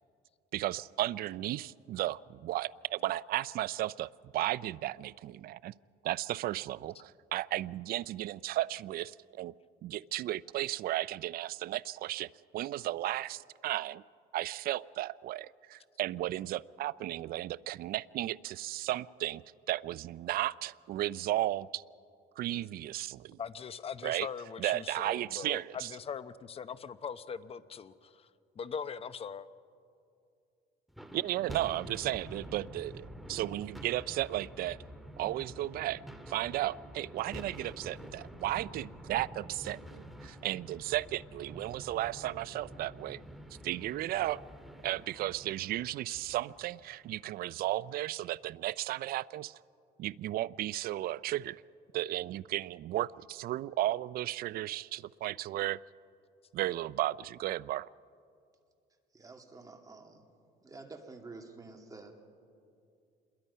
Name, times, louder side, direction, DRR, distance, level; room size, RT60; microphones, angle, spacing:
voice 1, 0.5-5.7 6.0-9.5 9.8-14.0 14.3-19.4 19.7-21.8 22.4-23.4 24.0-24.3 24.6-25.9 31.1-34.8 35.2-43.2 43.6-44.4 44.8-49.6 50.0-51.6 51.9-55.8 56.5-57.9, right 15 dB, 60° right, 19 dB, 0.4 m, -34 dB
voice 2, 23.4-28.3 28.6-29.5, left 6 dB, 35° left, 14 dB, 0.8 m, -41 dB
sound 1, 30.9-47.3, equal, ahead, 1.8 m, -48 dB
voice 3, 59.1-60.3 60.6-62.2, right 3 dB, 20° right, 3 dB, 2.5 m, -49 dB
27.0 x 22.0 x 5.6 m, 2.4 s
cardioid pair, 110°, 17 cm